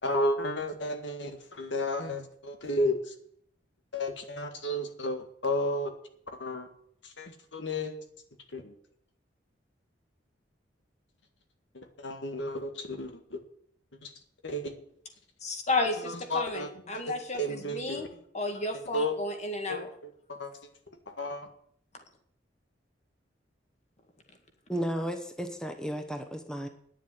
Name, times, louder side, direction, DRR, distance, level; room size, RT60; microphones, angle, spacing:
voice 1, 0.0-3.1 3.9-5.9 6.4-6.7 7.0-8.0 8.5-8.7 11.7-13.4 14.0-14.1 14.4-14.7 16.1-18.1 18.9-19.2 19.7-20.5 21.1-21.5, left 1 dB, 80° left, 6 dB, 1.9 m, -33 dB
voice 2, 15.4-18.1 18.3-19.9, left 2 dB, 40° left, 5 dB, 2.1 m, -32 dB
voice 3, 24.7-26.7, equal, 5° left, 6 dB, 1.0 m, -33 dB
10.5 x 7.2 x 9.4 m, 0.65 s
head